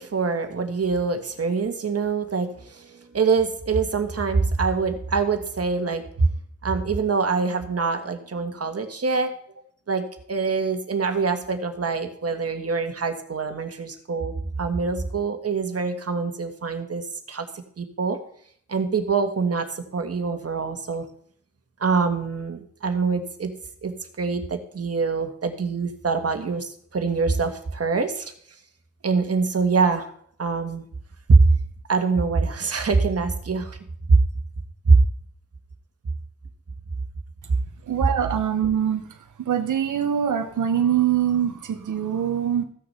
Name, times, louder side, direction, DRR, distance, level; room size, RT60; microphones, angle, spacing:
voice 1, 0.0-6.3 6.6-9.3 9.9-14.3 14.6-17.4 17.8-18.2 18.7-21.1 21.8-23.5 23.8-28.3 29.0-30.1 30.4-30.9 31.3-31.5 31.9-33.8 34.1-34.2 34.8-35.0, right 4 dB, 50° right, 6 dB, 1.7 m, -24 dB
voice 2, 37.9-39.0 39.5-42.6, right 9 dB, 85° right, 7 dB, 0.9 m, -23 dB
15.0 x 6.7 x 5.6 m, 0.62 s
wide cardioid pair, 90°, 30 cm